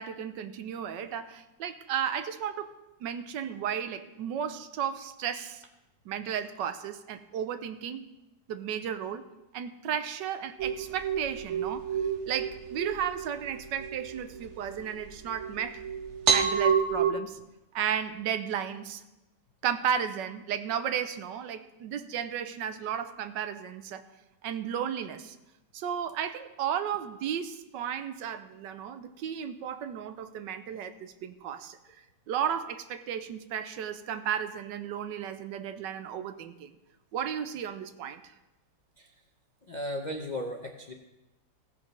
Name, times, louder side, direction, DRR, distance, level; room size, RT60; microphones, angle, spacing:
voice 1, 0.0-2.7 3.0-5.6 6.1-8.0 8.5-9.2 9.5-11.8 12.3-15.8 16.3-17.4 17.7-19.0 19.6-24.0 24.4-25.4 25.7-31.8 32.3-36.7 37.1-38.2, right 8 dB, 75° right, 10 dB, 1.3 m, -34 dB
sound 1, 10.6-17.1, right 6 dB, 50° right, 0.9 m, -30 dB
voice 2, 39.7-40.9, equal, 55° left, 2 dB, 0.5 m, -35 dB
16.0 x 6.1 x 5.3 m, 1.0 s
omnidirectional pair, 2.0 m